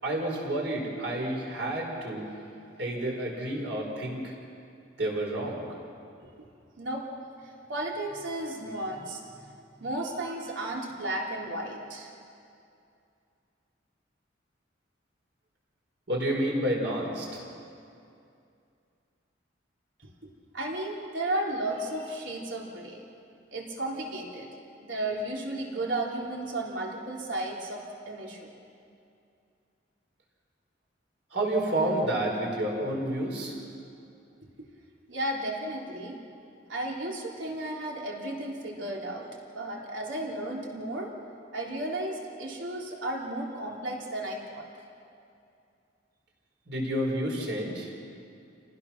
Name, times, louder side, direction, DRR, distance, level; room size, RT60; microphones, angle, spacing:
voice 1, 0.0-2.3 2.8-4.3 5.0-5.7 16.1-17.4 31.3-33.6 46.7-47.9, right 1 dB, 70° right, -1 dB, 5.1 m, -30 dB
voice 2, 6.8-7.1 7.4-12.1 20.0-20.1 20.5-23.0 23.5-24.5 24.8-28.5 34.6-34.7 35.1-36.2 36.7-39.3 39.5-41.1 41.5-44.7, right 1 dB, 85° right, -2 dB, 3.6 m, -34 dB
28.5 x 19.0 x 6.0 m, 2.5 s
head